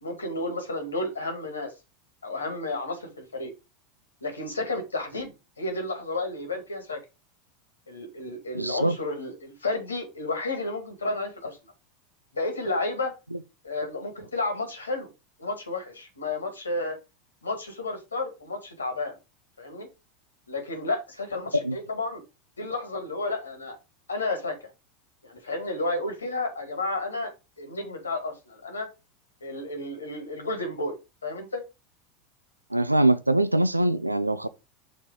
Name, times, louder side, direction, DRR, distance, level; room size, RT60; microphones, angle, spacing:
voice 1, 0.0-1.7 2.2-3.5 4.2-7.0 7.9-11.6 12.3-13.1 13.6-15.1 15.4-17.0 17.4-19.1 19.6-19.9 20.5-22.2 22.6-23.8 24.1-24.6 25.2-27.3 27.6-28.9 29.4-31.6, left 2 dB, 80° left, 1.9 m, -32 dB
voice 2, 8.5-8.9 21.6-21.8 32.7-34.5, right 1 dB, 90° right, 0.3 m, -23 dB
6.1 x 4.3 x 5.0 m
figure-of-eight pair, 80°, 0 cm